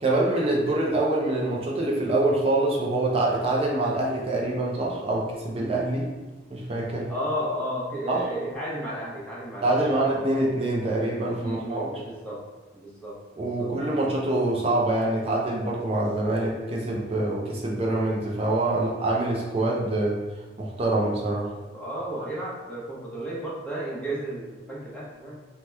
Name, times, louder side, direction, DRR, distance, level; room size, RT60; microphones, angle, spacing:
voice 1, 0.0-6.1 6.5-7.1 8.1-8.3 9.6-11.9 13.4-20.2 20.6-21.5, right 2 dB, 30° right, -2 dB, 0.4 m, -25 dB
voice 2, 7.1-10.4 11.2-12.4 12.7-13.7 18.7-18.9 21.7-25.4, equal, 5° left, -7 dB, 0.7 m, -34 dB
2.8 x 2.2 x 3.3 m, 1.2 s
head